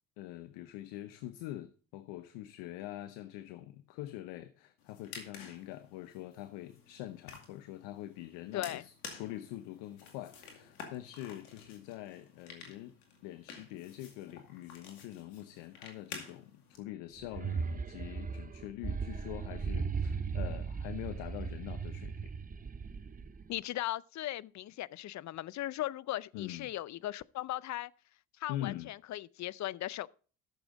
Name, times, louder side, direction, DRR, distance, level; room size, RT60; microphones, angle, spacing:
voice 1, 0.2-13.0 13.2-22.3 26.3-26.7 28.5-28.9, left 14 dB, 70° left, 0.9 m, -44 dB
sound 1, 4.8-16.8, left 5 dB, 90° left, 2.4 m, -51 dB
sound 2, 17.2-23.5, right 5 dB, 20° right, 0.7 m, -37 dB
voice 2, 23.5-27.9 28.4-30.1, left 14 dB, 40° left, 0.5 m, -38 dB
13.5 x 6.9 x 4.0 m
hypercardioid pair, 70°, 43 cm